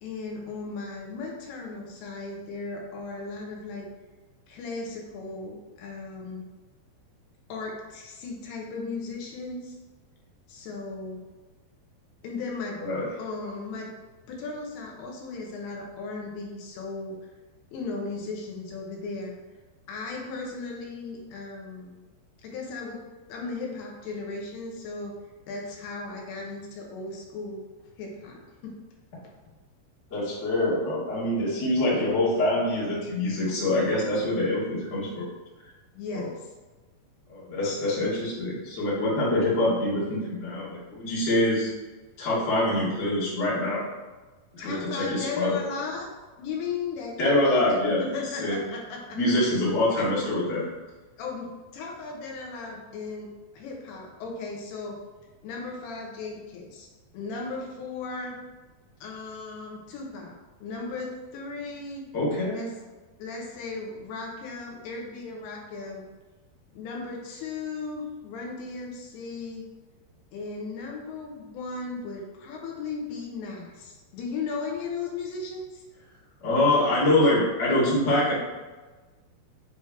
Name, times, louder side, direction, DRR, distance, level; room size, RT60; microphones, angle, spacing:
voice 1, 0.0-3.9 4.5-6.5 7.5-9.8 10.5-11.2 12.2-12.8 13.2-13.9 14.3-17.2 17.7-19.3 19.9-21.9 22.4-23.0 23.3-25.2 25.5-27.6 28.0-28.8 29.2-29.3 35.9-36.5 44.6-46.1 46.4-49.5 49.9-50.2 51.2-53.3 53.5-55.0 55.4-56.9 57.1-58.4 59.0-60.3 60.6-62.0 62.5-62.7 63.2-66.1 66.7-69.6 70.3-75.8, left 4 dB, 80° left, 0 dB, 2.9 m, -36 dB
voice 2, 30.1-35.3 36.1-36.3 37.3-41.7 42.2-43.9 44.5-45.5 47.2-48.1 48.4-48.6 49.1-50.6 62.1-62.6 76.4-78.3, left 1 dB, 40° left, -8 dB, 1.0 m, -25 dB
7.1 x 3.1 x 4.6 m, 1.2 s
omnidirectional pair, 4.9 m